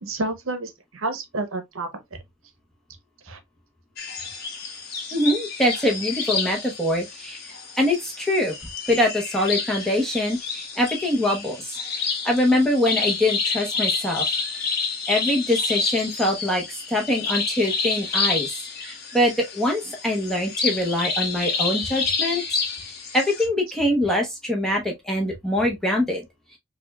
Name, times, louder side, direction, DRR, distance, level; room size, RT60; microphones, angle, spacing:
voice 1, 0.0-2.0 3.2-3.4, right 2 dB, 80° right, 0.7 m, -30 dB
sound 1, 4.0-23.5, left 4 dB, 50° left, 0.8 m, -29 dB
voice 2, 5.1-7.5 7.8-8.5 8.9-11.6 12.2-14.3 14.6-14.7 15.1-18.5 18.8-22.6 23.1-26.2, left 1 dB, ahead, 0.8 m, -23 dB
4.9 x 2.4 x 2.2 m
head